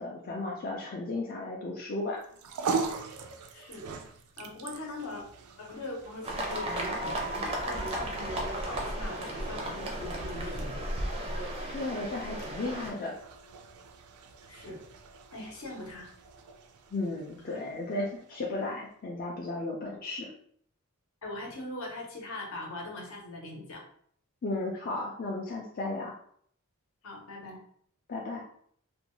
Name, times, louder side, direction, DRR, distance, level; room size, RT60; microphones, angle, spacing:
voice 1, 0.0-2.2 11.7-13.2 16.9-20.3 24.4-26.1 28.1-28.4, left 2 dB, 40° left, -2 dB, 0.4 m, -34 dB
sound 1, 2.2-18.7, right 4 dB, 90° right, 0.4 m, -42 dB
voice 2, 3.5-3.9 4.4-5.2 5.6-11.0 14.5-14.8 15.3-16.1 21.2-23.9 27.0-27.6, left 2 dB, 65° left, -1 dB, 0.8 m, -41 dB
sound 2, 6.2-12.9, right 1 dB, 25° right, 0.4 m, -34 dB
2.5 x 2.2 x 3.0 m, 0.63 s
head